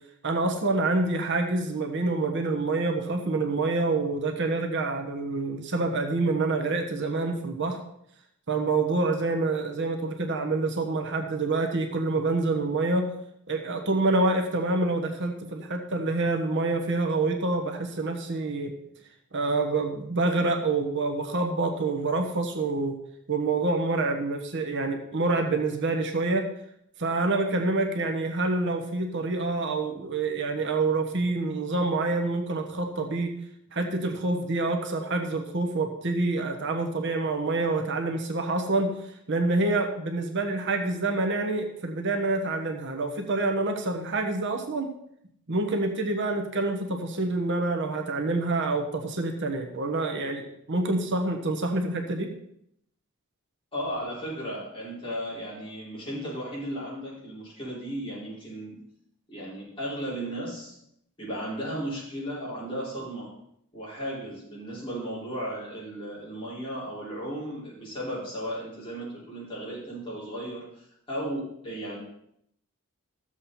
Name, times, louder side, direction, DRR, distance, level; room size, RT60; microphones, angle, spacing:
voice 1, 0.2-7.8 8.5-13.1 13.5-18.7 19.3-22.9 23.3-26.5 27.0-33.3 33.7-44.9 45.5-52.3, right 3 dB, 55° right, 4 dB, 1.2 m, -27 dB
voice 2, 53.7-58.8 59.3-60.8 61.2-63.3 63.7-72.0, equal, 25° left, -7 dB, 5.0 m, -35 dB
13.5 x 7.5 x 4.2 m, 0.73 s
head